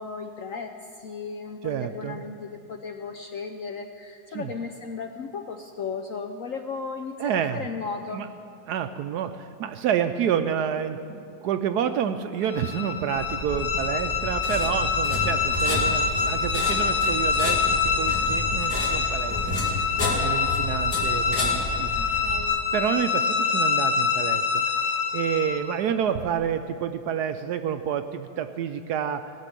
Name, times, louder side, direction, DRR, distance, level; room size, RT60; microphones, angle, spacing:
voice 1, 0.0-8.2 10.6-10.7 15.7-15.8 21.9-22.5, left 5 dB, 65° left, 5 dB, 0.8 m, -35 dB
voice 2, 1.6-2.2 4.3-4.5 7.2-7.7 8.1-8.3 8.7-19.4 19.6-19.8 20.2-22.3 22.7-24.7 25.1-29.3, right 8 dB, 70° right, 9 dB, 1.0 m, -29 dB
sound 1, 12.4-25.8, left 5 dB, 5° left, 1.8 m, -26 dB
sound 2, 13.2-22.5, left 2 dB, 50° left, 2.7 m, -31 dB
16.5 x 6.7 x 9.8 m, 2.5 s
omnidirectional pair, 2.0 m